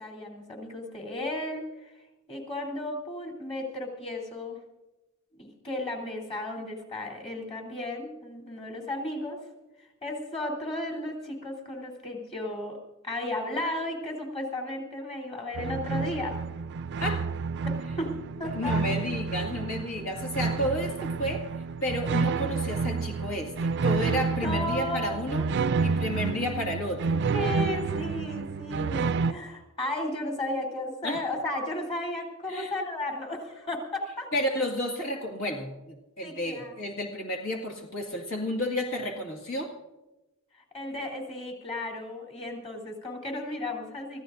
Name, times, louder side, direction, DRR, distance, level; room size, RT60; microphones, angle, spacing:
voice 1, 0.0-1.9 2.3-4.6 5.4-9.4 10.0-12.8 13.0-16.3 17.6-18.1 18.4-19.0 24.4-25.2 27.3-34.3 36.2-36.8 40.7-44.2, left 1 dB, 30° left, 1 dB, 3.5 m, -34 dB
sound 1, 15.5-29.3, right 4 dB, 55° right, 0.4 m, -29 dB
voice 2, 18.5-21.4 21.8-25.5 25.8-27.3 31.0-31.2 32.5-32.7 34.3-39.7, left 1 dB, 70° left, 1 dB, 2.1 m, -31 dB
26.5 x 14.5 x 2.6 m, 1.0 s
head